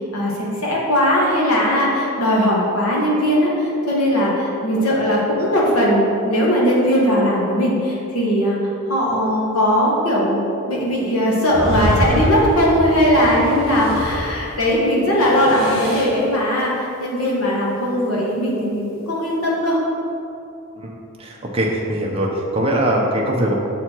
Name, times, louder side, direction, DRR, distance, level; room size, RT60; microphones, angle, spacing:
voice 1, 0.6-8.6 8.9-10.4 10.7-16.7 17.0-19.8, equal, 85° left, -4 dB, 1.5 m, -19 dB
sound 1, 11.5-14.7 15.0-16.2, equal, 65° left, 1.3 m, -26 dB
voice 2, 21.2-23.5, right 1 dB, 25° right, -2 dB, 0.8 m, -21 dB
7.1 x 4.3 x 4.5 m, 2.8 s
head